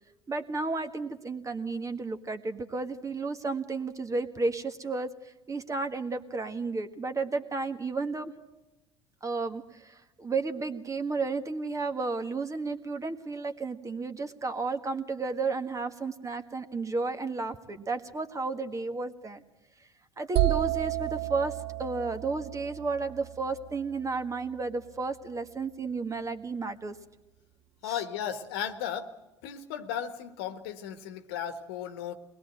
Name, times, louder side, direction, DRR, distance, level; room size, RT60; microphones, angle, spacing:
voice 1, 0.3-5.1 5.5-8.3 9.2-19.4 20.2-26.9 27.8-28.0, right 3 dB, 20° right, 9 dB, 1.7 m, -32 dB
sound 1, 20.4-24.1, right 17 dB, 45° right, 0.7 m, -31 dB
voice 2, 27.8-29.1 29.4-32.1, left 9 dB, 65° left, 10 dB, 1.6 m, -35 dB
23.0 x 20.5 x 7.8 m, 1.0 s
figure-of-eight pair, 65°, 14 cm